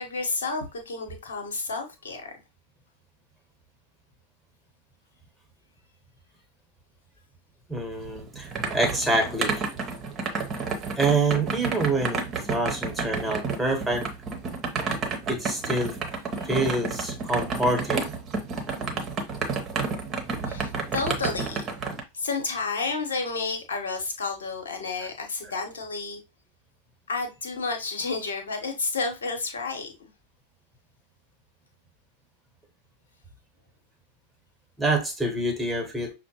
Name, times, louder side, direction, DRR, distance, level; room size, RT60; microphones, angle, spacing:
voice 1, 0.0-2.3 16.4-16.5 20.4-21.7 22.1-26.2 27.1-29.9, left 4 dB, 65° left, 1.2 m, -31 dB
voice 2, 7.7-9.6 11.0-12.2 12.5-14.1 15.3-16.0 16.4-18.1 34.8-36.1, right 2 dB, ahead, 1.3 m, -26 dB
sound 1, 8.0-22.0, right 4 dB, 30° right, 0.9 m, -30 dB
6.1 x 2.2 x 2.9 m
figure-of-eight pair, 90°, 0 cm